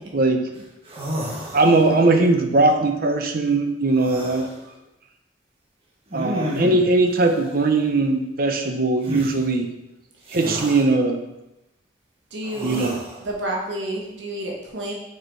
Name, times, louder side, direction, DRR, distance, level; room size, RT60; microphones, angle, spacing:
sound 1, 0.6-0.7 0.8-2.1 3.9-4.5 6.1-7.0 9.0-9.3 10.3-10.9 12.4-13.2, equal, 30° right, 1.5 m, -31 dB
voice 1, 1.5-4.5 6.1-9.7 10.3-11.2 12.6-13.0, right 2 dB, 55° right, 5 dB, 0.8 m, -20 dB
voice 2, 12.3-12.9 13.2-14.9, right 1 dB, 85° right, -1 dB, 1.2 m, -29 dB
6.4 x 4.8 x 4.6 m, 0.90 s
head